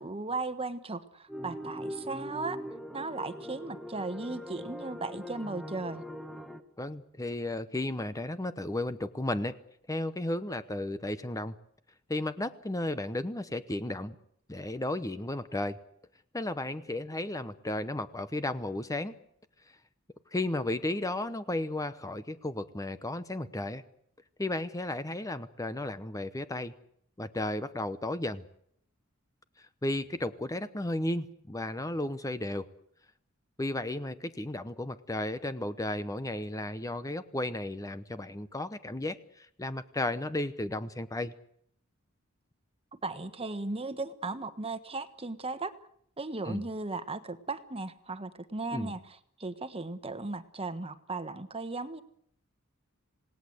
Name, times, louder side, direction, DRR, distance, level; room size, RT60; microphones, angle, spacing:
voice 1, 0.0-2.6 2.9-6.0 43.0-45.7 46.2-52.0, right 3 dB, 30° right, 12 dB, 1.4 m, -36 dB
sound 1, 1.3-6.6, equal, ahead, 1.3 m, -41 dB
voice 2, 6.8-9.5 9.9-11.6 12.1-14.1 14.5-15.8 16.3-19.1 20.3-23.8 24.4-26.7 27.2-28.4 29.8-32.7 33.6-41.3 46.4-46.7 48.7-48.9, left 1 dB, 15° left, 12 dB, 0.9 m, -34 dB
27.5 x 18.5 x 8.0 m, 0.68 s
head